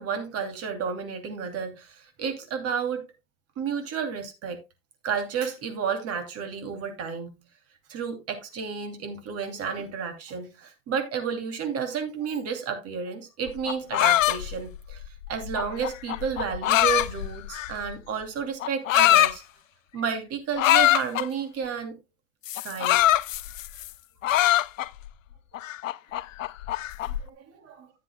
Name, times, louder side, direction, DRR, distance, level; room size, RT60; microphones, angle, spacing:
voice 1, 0.0-3.1 3.6-4.6 5.0-7.3 7.9-19.4 19.9-22.0 22.5-23.0 27.1-27.9, right 6 dB, 40° right, 2.7 m, -31 dB
sound 1, 13.5-17.9 18.6-19.3 20.6-21.3 22.5-23.9 24.2-25.1 25.5-27.2, left 14 dB, 80° left, 0.6 m, -23 dB
14.5 x 7.7 x 2.2 m
hypercardioid pair, 100°, 38 cm